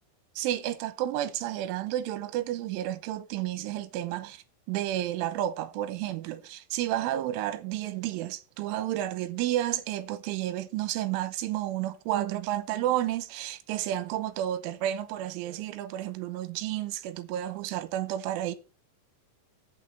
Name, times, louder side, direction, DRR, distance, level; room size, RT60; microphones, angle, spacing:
voice 1, 0.4-18.6, right 13 dB, 85° right, 3.3 m, -31 dB
8.6 x 6.4 x 7.3 m
omnidirectional pair, 5.7 m